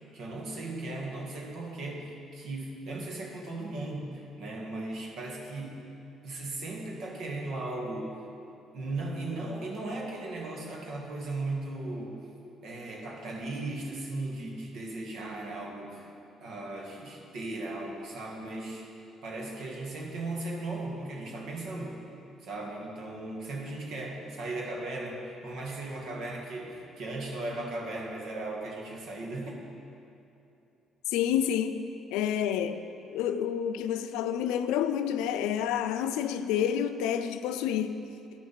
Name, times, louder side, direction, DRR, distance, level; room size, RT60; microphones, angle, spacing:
voice 1, 0.1-5.9 6.2-8.1 8.7-12.3 12.6-16.1 16.4-18.9 19.2-22.0 22.4-29.6, right 2 dB, 70° right, 1.8 m, -37 dB
voice 2, 31.1-38.0, left 9 dB, 80° left, 0.4 m, -29 dB
9.9 x 6.5 x 7.4 m
hypercardioid pair, 55°, 0 cm